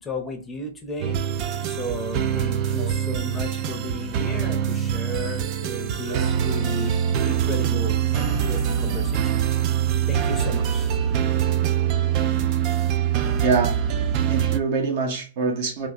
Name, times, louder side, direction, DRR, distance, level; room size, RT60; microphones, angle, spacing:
voice 1, 0.0-1.2 1.6-7.0 7.2-9.4 10.1-10.9, left 2 dB, 15° left, 0.7 m, -34 dB
sound 1, 1.0-14.6, right 9 dB, 40° right, 0.4 m, -24 dB
voice 2, 13.4-13.7 14.3-15.9, right 4 dB, 55° right, 1.1 m, -25 dB
3.5 x 2.4 x 3.0 m
hypercardioid pair, 135°, 0 cm